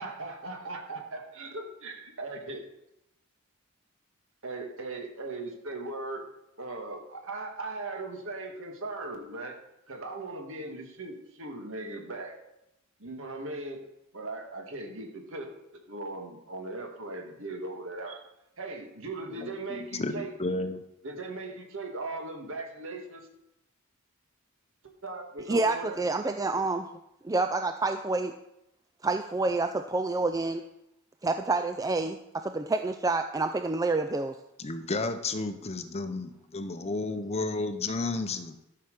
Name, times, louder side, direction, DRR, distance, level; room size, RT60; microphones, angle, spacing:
voice 1, 0.0-2.6 4.4-6.3 6.6-9.6 9.9-12.4 13.0-13.8 14.1-15.5 15.9-18.2 18.6-20.3 21.0-23.3 25.0-26.1, right 2 dB, 65° right, 3 dB, 2.0 m, -38 dB
voice 2, 19.3-20.8 34.6-38.6, left 3 dB, 30° left, 9 dB, 0.7 m, -32 dB
voice 3, 25.5-26.9 27.2-28.3 29.0-30.7 31.2-34.4, right 3 dB, 15° right, 7 dB, 0.4 m, -28 dB
13.0 x 5.8 x 6.7 m, 0.86 s
head